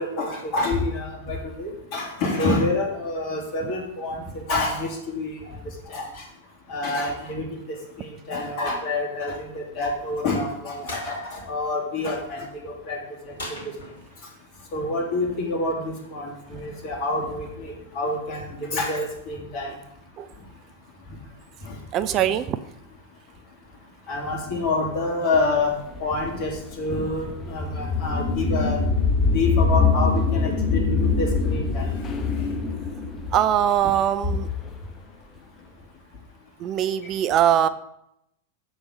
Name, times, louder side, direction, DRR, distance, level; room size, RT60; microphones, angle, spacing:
voice 1, 0.0-5.4 5.9-6.1 6.7-13.0 14.7-19.7 24.1-25.7 26.0-28.8 29.3-31.8 33.8-33.9, left 2 dB, 45° left, 0 dB, 2.8 m, -27 dB
sound 1, 10.9-11.1 13.4-14.3, left 1 dB, 65° left, 2.2 m, -38 dB
voice 2, 21.9-22.6 33.3-34.5 36.6-37.7, right 10 dB, 35° right, 13 dB, 0.5 m, -21 dB
sound 2, 25.7-34.7, left 4 dB, 20° left, 1.1 m, -24 dB
7.1 x 7.1 x 5.4 m, 0.77 s
figure-of-eight pair, 90°, 0 cm